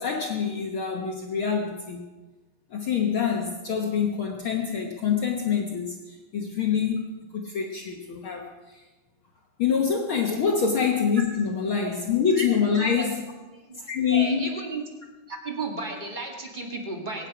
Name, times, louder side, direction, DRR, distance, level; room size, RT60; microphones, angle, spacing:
voice 1, 0.0-2.0 2.7-8.8 9.6-13.2 13.9-14.5, left 6 dB, 65° left, 1 dB, 1.3 m, -26 dB
voice 2, 13.7-14.8 15.3-17.3, right 3 dB, 20° right, 0 dB, 1.5 m, -33 dB
22.5 x 9.8 x 5.0 m, 1.2 s
omnidirectional pair, 4.1 m